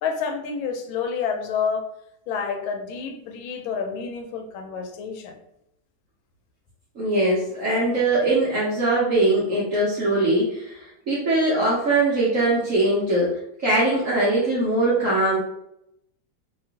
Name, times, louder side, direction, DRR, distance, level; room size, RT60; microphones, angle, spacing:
voice 1, 0.0-1.9 2.3-5.3, left 6 dB, 80° left, 4 dB, 1.3 m, -29 dB
voice 2, 7.0-15.4, right 2 dB, 60° right, -6 dB, 0.8 m, -21 dB
2.9 x 2.9 x 2.7 m, 0.80 s
omnidirectional pair, 2.2 m